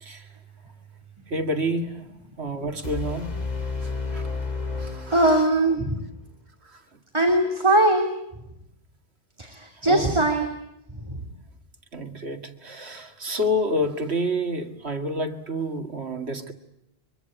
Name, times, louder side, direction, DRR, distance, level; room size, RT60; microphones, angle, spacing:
voice 1, 1.3-2.1 2.4-3.4 4.1-4.2 4.8-5.4 9.9-10.2 11.9-16.5, equal, 90° right, 5 dB, 2.4 m, -28 dB
sound 1, 2.8-5.8, left 3 dB, 40° left, 2.6 m, -31 dB
voice 2, 5.1-6.0 7.1-8.1 9.4-10.5 11.0-11.2, right 1 dB, 25° right, 2 dB, 3.1 m, -20 dB
24.0 x 23.5 x 9.2 m, 0.81 s
omnidirectional pair, 1.1 m